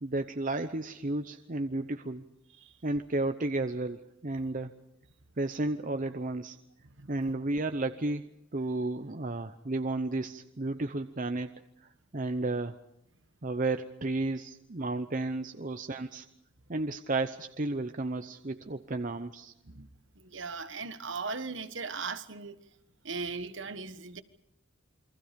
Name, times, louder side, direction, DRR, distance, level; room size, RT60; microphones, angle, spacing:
voice 1, 0.0-2.2 2.8-4.7 5.4-6.6 7.1-8.2 8.5-11.5 11.8-12.8 13.4-16.3 16.7-19.5, right 2 dB, 40° right, 0.8 m, -33 dB
voice 2, 6.8-7.2 15.6-15.7 19.6-22.6 23.0-24.2, right 4 dB, 60° right, 1.4 m, -39 dB
28.5 x 23.5 x 5.3 m
head